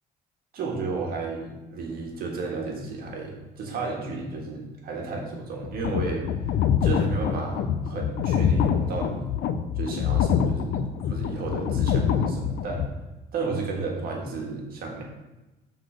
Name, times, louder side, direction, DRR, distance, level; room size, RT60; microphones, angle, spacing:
voice 1, 0.5-6.3 6.8-9.3 9.8-12.9 13.3-15.0, right 3 dB, 60° right, 0 dB, 1.6 m, -33 dB
sound 1, 5.6-12.9, left 8 dB, 75° left, 0.5 m, -25 dB
6.3 x 4.0 x 5.0 m, 1.0 s
cardioid pair, 110°, 17 cm